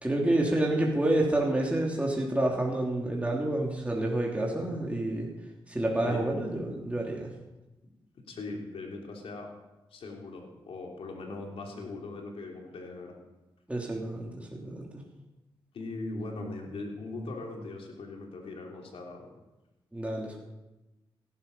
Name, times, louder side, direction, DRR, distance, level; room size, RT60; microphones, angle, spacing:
voice 1, 0.0-5.3 5.7-7.3 13.7-15.0 19.9-20.4, right 1 dB, 15° right, -2 dB, 3.1 m, -28 dB
voice 2, 8.3-9.5 9.9-13.2 15.7-19.3, left 2 dB, 75° left, 1 dB, 3.3 m, -40 dB
17.0 x 12.0 x 5.5 m, 1.0 s
cardioid pair, 60°, 10 cm